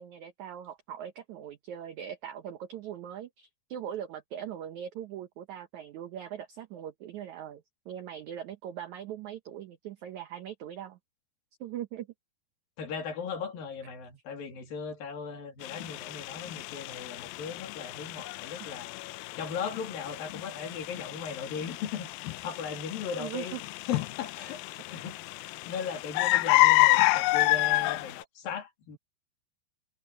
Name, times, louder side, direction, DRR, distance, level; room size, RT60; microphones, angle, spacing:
voice 1, 0.0-11.0 11.6-12.1 18.6-18.7 23.1-23.6, right 10 dB, 80° right, 1.7 m, -40 dB
voice 2, 12.8-18.9 19.4-23.6 23.9-25.1 25.7-29.0, left 6 dB, 65° left, 4.2 m, -38 dB
sound 1, 15.6-28.2, left 20 dB, 80° left, 2.2 m, -29 dB
omnidirectional pair, 4.6 m